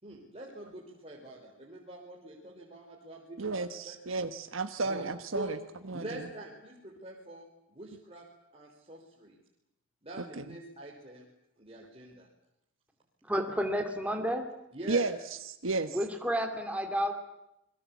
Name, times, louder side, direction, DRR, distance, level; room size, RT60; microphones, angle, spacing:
voice 1, 0.0-4.0 4.9-5.1 5.3-5.6 5.9-8.3 8.5-9.4 10.0-11.3 11.6-12.3 14.7-15.0, right 1 dB, 30° right, -2 dB, 4.2 m, -45 dB
voice 2, 3.4-5.6 5.9-6.2 10.2-10.4 14.9-15.2 15.5-16.0, right 3 dB, 85° right, 9 dB, 1.3 m, -33 dB
voice 3, 13.2-14.5 15.9-17.1, equal, 5° right, 4 dB, 2.4 m, -31 dB
28.5 x 22.0 x 8.4 m, 0.84 s
head